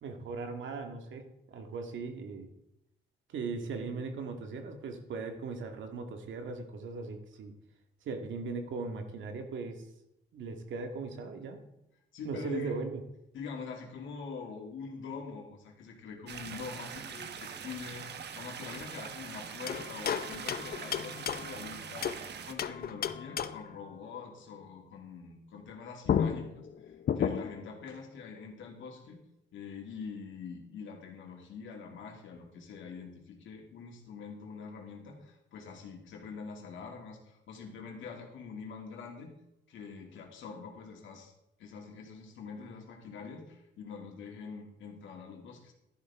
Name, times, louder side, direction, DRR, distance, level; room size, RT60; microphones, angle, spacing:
voice 1, 0.0-2.5 3.3-7.5 8.1-9.8 10.3-11.6 12.2-13.0, right 4 dB, 75° right, 5 dB, 1.9 m, -38 dB
voice 2, 12.1-12.7 13.3-29.2 29.5-39.3 39.7-41.3 41.6-45.7, left 5 dB, 75° left, 1 dB, 2.7 m, -44 dB
sound 1, 16.3-22.5, right 7 dB, 60° right, 1.2 m, -43 dB
sound 2, 19.7-22.2 22.6-23.8 25.7-25.8 26.1-27.7, left 8 dB, 50° left, 0.7 m, -33 dB
12.5 x 11.0 x 3.7 m, 0.85 s
cardioid pair, 90°, 20 cm